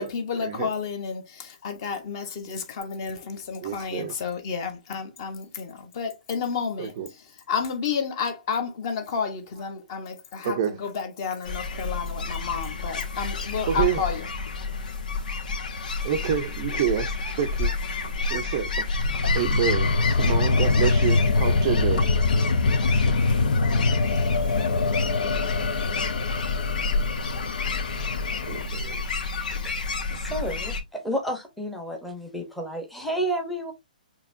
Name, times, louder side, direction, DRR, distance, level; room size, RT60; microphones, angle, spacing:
voice 1, 0.0-14.3, left 6 dB, 30° left, 1.0 m, -31 dB
voice 2, 3.6-4.1 6.8-7.1 10.4-10.7 13.7-14.0 16.0-17.7 18.3-18.9 19.3-22.1 28.5-29.0, right 9 dB, 25° right, 0.5 m, -28 dB
sound 1, 11.4-30.8, left 3 dB, 60° left, 1.8 m, -30 dB
sound 2, 18.9-28.7, left 3 dB, 80° left, 0.7 m, -24 dB
Crackle, 24.0-30.0, left 5 dB, 45° left, 1.3 m, -43 dB
voice 3, 29.6-33.7, right 1 dB, ahead, 0.8 m, -31 dB
6.7 x 2.9 x 2.6 m
hypercardioid pair, 170°, 5 cm